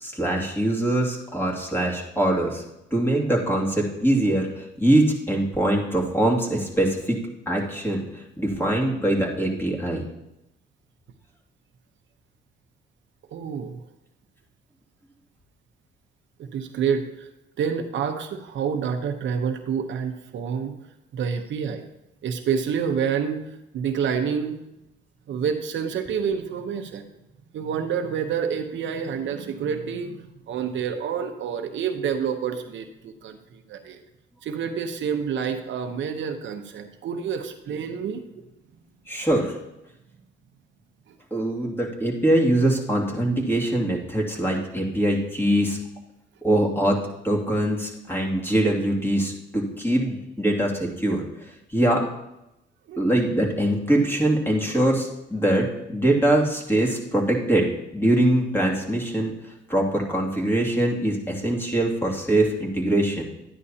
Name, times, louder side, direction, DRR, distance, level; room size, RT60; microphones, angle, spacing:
voice 1, 0.0-2.6 2.9-7.2 7.5-10.0 39.1-39.6 41.3-45.8 46.4-51.2 51.7-52.1 53.0-57.7 57.9-59.3 59.7-63.2, right 1 dB, 10° left, -1 dB, 2.4 m, -23 dB
voice 2, 13.3-13.8 16.5-17.3 17.6-20.7 21.1-21.8 22.2-23.4 23.7-24.6 25.3-27.1 27.5-34.0 34.4-38.2 41.1-41.2 52.9-53.0, right 7 dB, 70° right, 6 dB, 0.9 m, -28 dB
12.0 x 9.8 x 2.8 m, 0.90 s
cardioid pair, 90°, 20 cm